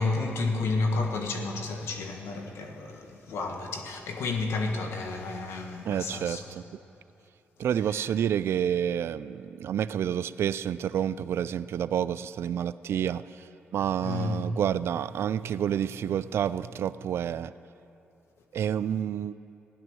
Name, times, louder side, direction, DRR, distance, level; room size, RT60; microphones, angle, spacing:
voice 1, 0.0-6.4 7.9-8.0 14.0-14.4, left 3 dB, 80° left, 1.5 m, -31 dB
voice 2, 5.8-6.6 7.6-13.5 13.7-17.5 18.5-19.3, right 9 dB, 70° right, 0.4 m, -29 dB
16.0 x 11.0 x 6.3 m
cardioid pair, 70°, 4 cm